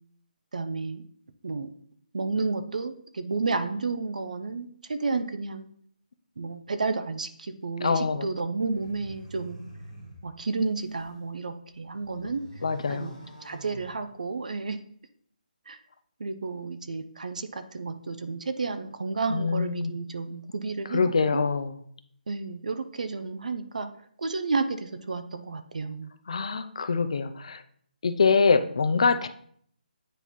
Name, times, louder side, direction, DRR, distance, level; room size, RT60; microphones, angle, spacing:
voice 1, 0.5-1.0 1.4-1.7 2.1-5.7 6.4-9.6 10.2-12.4 12.9-14.8 15.7-15.8 16.2-21.4 22.3-23.9 24.2-26.1, right 4 dB, 55° right, 10 dB, 0.5 m, -31 dB
voice 2, 7.8-8.3 12.6-13.2 19.3-19.9 20.9-21.8 26.3-27.6 28.0-29.3, left 5 dB, 40° left, 10 dB, 0.4 m, -24 dB
sound 1, 8.5-11.2 11.7-14.5, right 1 dB, 30° right, 2.1 m, -47 dB
9.1 x 4.0 x 3.0 m, 0.63 s
hypercardioid pair, 180°, 5 cm